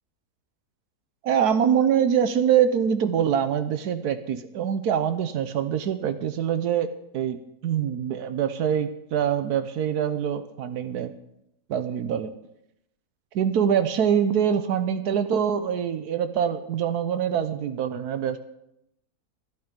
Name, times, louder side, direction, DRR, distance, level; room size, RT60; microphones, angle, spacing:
voice 1, 1.2-11.1 11.7-12.3 13.3-18.4, right 8 dB, 85° right, 10 dB, 1.3 m, -24 dB
12.0 x 11.5 x 5.2 m, 0.83 s
omnidirectional pair, 1.6 m